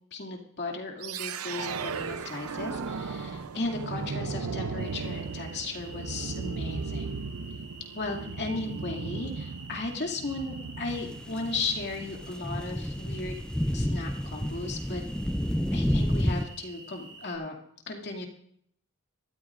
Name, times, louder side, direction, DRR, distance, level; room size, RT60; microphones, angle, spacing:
voice 1, 0.1-7.2 7.9-13.4 13.7-15.0 15.7-17.6 17.9-18.3, left 3 dB, 50° left, 2 dB, 2.4 m, -36 dB
sound 1, 1.0-12.1, right 5 dB, 75° right, 0.6 m, -36 dB
sound 2, 4.8-17.4, right 3 dB, 60° right, 7.2 m, -49 dB
sound 3, 10.9-16.5, equal, 5° left, 0.4 m, -30 dB
23.5 x 13.5 x 2.5 m, 0.66 s
head